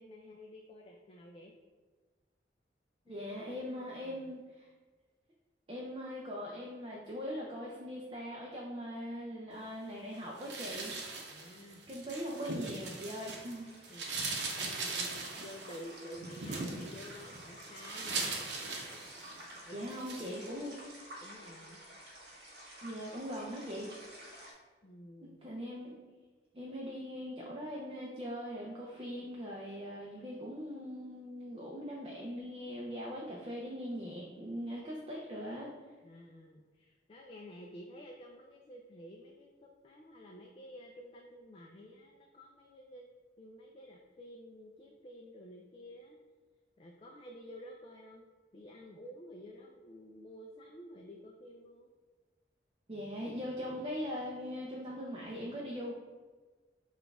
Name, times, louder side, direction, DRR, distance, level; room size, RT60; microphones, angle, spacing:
voice 1, 0.0-1.5 3.1-4.3 11.3-11.8 13.9-18.4 19.5-20.6 21.2-21.8 24.8-25.4 36.0-43.1 43.4-46.2 46.8-48.3 48.5-51.9, equal, 30° left, 0 dB, 0.3 m, -51 dB
voice 2, 3.1-4.7 5.7-10.9 11.9-13.7 19.7-20.8 22.8-23.9 25.4-26.0 26.5-35.7 52.9-55.9, equal, 30° right, -3 dB, 0.5 m, -41 dB
sound 1, 10.4-13.5 13.8-19.5 19.9-20.3, right 3 dB, 80° right, 0.7 m, -40 dB
sound 2, 11.8-24.5, right 1 dB, 60° right, 1.2 m, -52 dB
5.9 x 2.4 x 3.4 m, 1.4 s
head